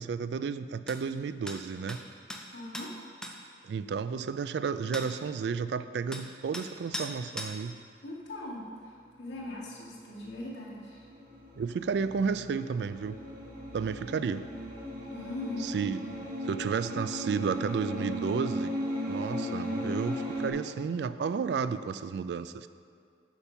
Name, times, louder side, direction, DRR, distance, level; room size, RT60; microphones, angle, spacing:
voice 1, 0.0-2.0 3.6-7.8 11.6-13.2 13.7-14.5 15.6-16.0 16.5-18.7 19.1-22.7, right 5 dB, 70° right, 13 dB, 0.3 m, -32 dB
sound 1, 0.9-1.0 1.5-1.6 1.9-2.0 2.3-2.4 2.7-2.9 3.2-3.3 4.9-5.1 6.1-6.2 6.5-6.7 6.9-7.1 7.4-7.5, equal, 5° left, 0.5 m, -38 dB
voice 2, 2.5-2.9 8.0-8.7 9.2-11.1 15.1-15.8, left 1 dB, 80° left, -5 dB, 2.0 m, -40 dB
sound 2, 10.1-20.5, equal, 55° right, 1.5 m, -37 dB
8.4 x 5.3 x 5.8 m, 2.3 s
head